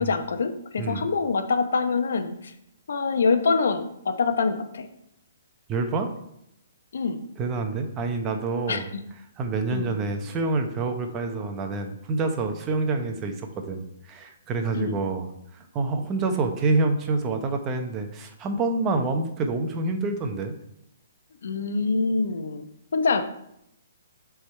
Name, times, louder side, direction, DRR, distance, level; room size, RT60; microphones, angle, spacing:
voice 1, 0.0-2.5 2.9-4.9 6.9-7.2 8.7-8.8 9.7-9.9 14.7-15.0 21.4-22.7 22.9-23.2, left 4 dB, 75° left, 8 dB, 0.8 m, -25 dB
voice 2, 5.7-6.1 7.4-8.9 9.4-20.6, right 3 dB, 20° right, 5 dB, 0.8 m, -27 dB
6.6 x 3.6 x 4.3 m, 0.79 s
hypercardioid pair, 155°, 0 cm